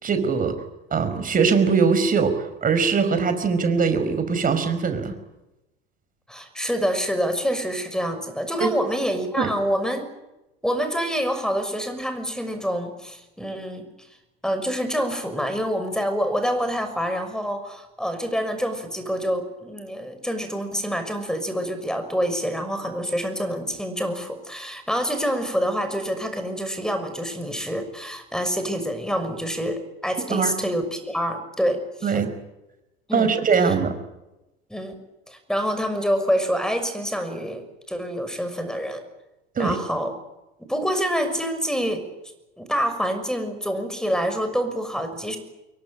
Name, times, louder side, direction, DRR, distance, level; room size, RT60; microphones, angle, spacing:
voice 1, 0.0-0.5 0.9-2.3 2.6-5.2 8.6-8.7 9.4-9.5 30.3-30.5 32.0-32.3 33.1-33.9 39.6-39.8, right 5 dB, 30° right, 9 dB, 5.3 m, -21 dB
voice 2, 6.3-10.0 10.6-13.9 14.4-32.2 33.1-33.3 33.6-33.7 34.7-34.9 35.3-39.0 39.6-40.1 40.7-42.1 42.6-45.4, equal, ahead, 9 dB, 6.2 m, -26 dB
26.0 x 23.0 x 9.0 m, 0.95 s
figure-of-eight pair, 75°, 30 cm